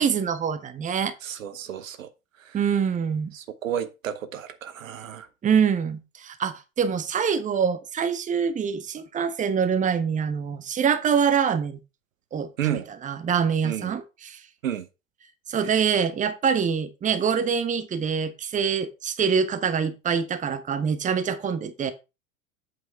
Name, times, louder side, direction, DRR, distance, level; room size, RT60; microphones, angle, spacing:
voice 1, 0.0-1.1 2.5-3.3 5.4-11.8 12.3-14.4 15.5-21.9, right 7 dB, 20° right, 0.9 m, -25 dB
voice 2, 1.2-2.1 2.4-2.6 3.3-5.3 12.6-12.9 13.6-13.9 14.6-14.9 15.6-15.8, right 10 dB, 70° right, 0.9 m, -32 dB
8.0 x 5.0 x 4.5 m
figure-of-eight pair, 75°, 41 cm